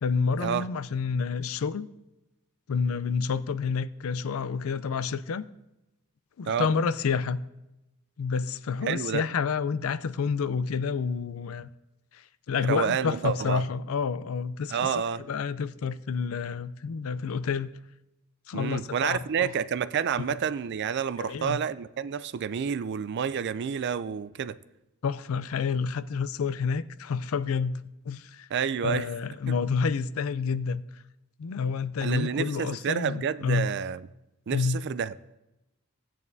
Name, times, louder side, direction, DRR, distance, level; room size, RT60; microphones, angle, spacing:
voice 1, 0.0-1.9 2.7-5.4 6.4-7.4 8.2-11.7 12.1-17.7 18.5-19.5 20.2-20.4 21.2-21.6 25.0-28.5 28.8-31.0 31.4-33.7 34.5-34.8, left 5 dB, 70° left, 0.4 m, -29 dB
voice 2, 8.9-9.2 12.7-13.6 14.7-15.2 18.5-24.6 28.5-29.1 29.5-29.6 32.0-34.0 34.5-35.1, right 7 dB, 55° right, 0.4 m, -29 dB
16.5 x 9.0 x 2.7 m
head